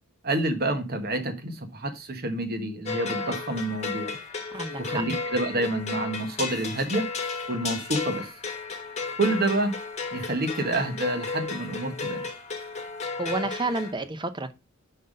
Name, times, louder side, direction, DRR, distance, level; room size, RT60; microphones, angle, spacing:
voice 1, 0.2-4.2 4.8-7.1 7.5-8.3 9.2-9.7 10.1-12.2, right 2 dB, 50° right, 1.4 m, -28 dB
sound 1, 2.9-13.9, left 4 dB, 35° left, 1.2 m, -34 dB
voice 2, 4.5-5.0 13.2-14.5, right 3 dB, 20° right, 0.7 m, -30 dB
5.9 x 5.5 x 5.2 m
head